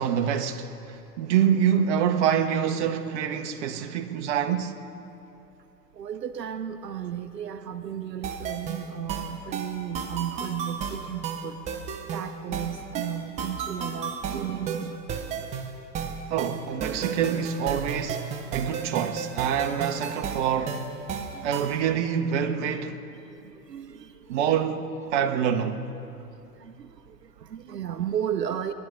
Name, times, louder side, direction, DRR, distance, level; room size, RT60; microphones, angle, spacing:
voice 1, 0.0-4.7 16.3-20.8 21.4-23.0 24.3-25.8, right 8 dB, 45° right, 0.8 m, -26 dB
voice 2, 5.9-11.6 12.1-15.0 21.2-21.7 23.1-24.4 25.0-25.2 26.6-28.7, right 9 dB, 80° right, 0.7 m, -34 dB
sound 1, 8.2-21.8, right 6 dB, 15° right, 0.5 m, -33 dB
19.0 x 11.5 x 3.9 m
figure-of-eight pair, 100°, 49 cm